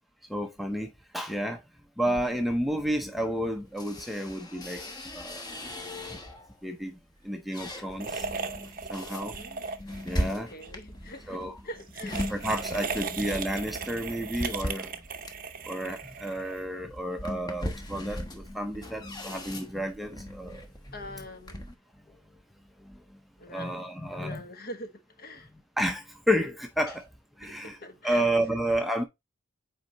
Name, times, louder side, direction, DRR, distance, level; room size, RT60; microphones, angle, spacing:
voice 1, 0.3-1.6 2.0-4.8 5.1-5.4 6.1-6.2 6.6-7.0 7.2-8.3 8.9-9.3 10.0-10.5 11.3-11.5 12.3-14.9 15.6-20.7 22.8-23.0 23.5-24.4 25.8-27.0 27.4-27.8 28.0-29.0, equal, ahead, 0.6 m, -31 dB
sound 1, 2.0-6.6 7.0-21.7, equal, 20° left, 1.1 m, -39 dB
sound 2, 8.0-10.2 10.5-10.7 11.8-16.8, right 5 dB, 40° right, 0.7 m, -37 dB
voice 2, 9.2-9.7 10.2-12.3 20.9-21.7 23.4-23.8 24.1-25.5 26.8-27.0 27.4-28.6, left 1 dB, 45° left, 1.2 m, -44 dB
7.9 x 4.7 x 2.9 m
head